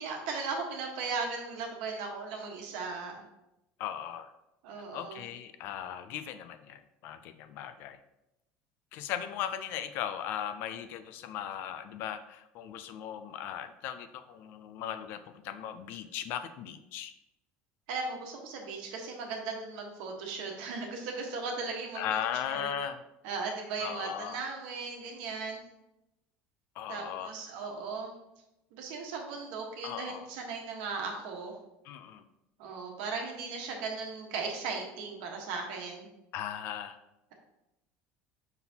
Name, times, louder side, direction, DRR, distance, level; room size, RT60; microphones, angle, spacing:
voice 1, 0.0-3.2 4.6-5.2 17.9-22.0 22.5-22.7 23.2-25.6 26.9-28.1 28.7-31.5 32.6-36.1, right 4 dB, 75° right, 1 dB, 1.3 m, -37 dB
voice 2, 3.8-4.3 4.9-8.0 8.9-17.1 21.9-23.0 23.8-24.4 26.8-27.3 29.8-30.3 31.8-32.2 36.3-37.0, left 9 dB, 50° left, 10 dB, 0.4 m, -38 dB
5.8 x 5.6 x 2.9 m, 0.90 s
cardioid pair, 180°, 5 cm